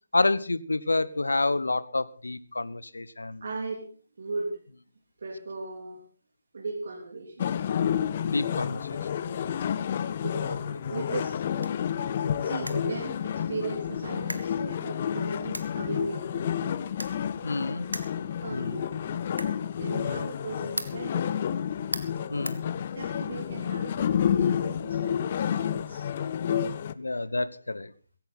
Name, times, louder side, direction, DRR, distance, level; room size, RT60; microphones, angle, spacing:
voice 1, 0.1-3.4 8.2-9.2 17.4-17.9 18.5-18.8 20.0-20.2 22.3-22.6 27.0-27.9, left 2 dB, 70° left, 18 dB, 1.0 m, -29 dB
voice 2, 3.4-3.9 4.2-4.6 5.2-6.0 6.5-7.7 9.2-9.6 10.2-11.7 12.4-16.4 17.6-17.9 18.4-19.2 19.8-21.6 22.9-26.0, right 3 dB, 50° right, 0 dB, 3.3 m, -37 dB
sound 1, 7.4-26.9, left 8 dB, 35° left, 0.7 m, -30 dB
sound 2, 11.4-23.3, right 1 dB, 80° right, 1.8 m, -43 dB
16.5 x 16.0 x 4.2 m, 0.41 s
figure-of-eight pair, 145°, 0 cm